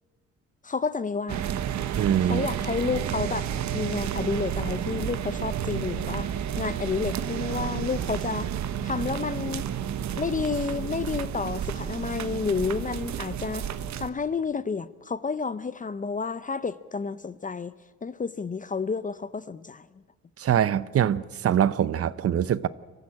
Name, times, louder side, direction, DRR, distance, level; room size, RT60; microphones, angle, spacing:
voice 1, 0.6-1.5 2.2-8.5 8.8-9.7 10.2-13.7 14.0-17.7 18.0-19.9, left 5 dB, 25° left, 0.6 m, -30 dB
sound 1, 1.3-14.1, right 9 dB, 65° right, 1.2 m, -31 dB
voice 2, 2.0-2.5 20.4-22.7, right 9 dB, 50° right, 0.8 m, -23 dB
24.5 x 14.5 x 8.6 m
cardioid pair, 90°, 30 cm